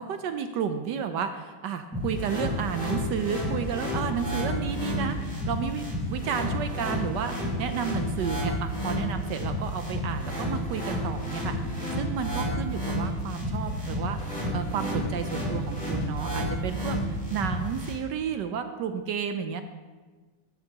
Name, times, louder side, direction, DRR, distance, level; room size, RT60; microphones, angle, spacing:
voice 1, 0.0-19.6, right 7 dB, 70° right, 8 dB, 1.1 m, -32 dB
sound 1, 1.9-17.9, equal, 5° left, 3.8 m, -31 dB
sound 2, 2.8-5.5 5.8-8.5 8.7-12.1 12.4-12.8 13.0-16.4 16.7-17.3, left 3 dB, 70° left, 2.0 m, -43 dB
15.0 x 11.0 x 2.9 m, 1.4 s
omnidirectional pair, 2.3 m